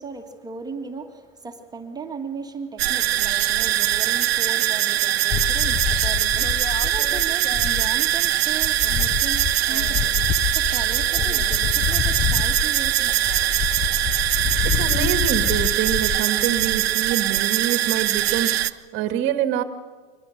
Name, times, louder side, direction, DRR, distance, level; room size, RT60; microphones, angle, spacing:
voice 1, 0.0-13.4, right 4 dB, 15° right, 3 dB, 1.9 m, -37 dB
sound 1, 2.8-18.7, right 13 dB, 80° right, 0.8 m, -22 dB
sound 2, 5.3-8.2 8.5-16.2, left 8 dB, 15° left, 0.5 m, -27 dB
voice 2, 14.6-19.6, right 9 dB, 40° right, 9 dB, 1.6 m, -26 dB
23.5 x 19.0 x 6.6 m, 1.5 s
hypercardioid pair, 115°, 30 cm